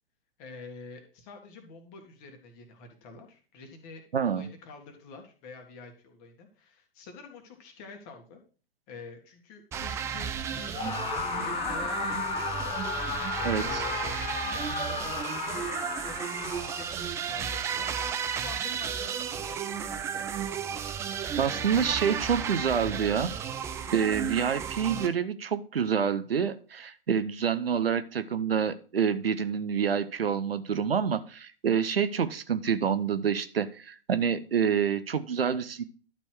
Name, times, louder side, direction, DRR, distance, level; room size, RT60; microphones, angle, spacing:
voice 1, 0.4-8.4 8.9-23.0, left 4 dB, 35° left, 4 dB, 2.1 m, -47 dB
voice 2, 4.1-4.5 13.4-13.8 21.4-23.3 23.9-35.8, right 7 dB, 75° right, 12 dB, 0.8 m, -27 dB
sound 1, 9.7-25.1, right 8 dB, 10° right, 0.4 m, -34 dB
Screaming, 10.7-17.0, left 5 dB, 20° left, 1.1 m, -34 dB
12.0 x 4.4 x 4.7 m, 0.39 s
figure-of-eight pair, 110°, 30 cm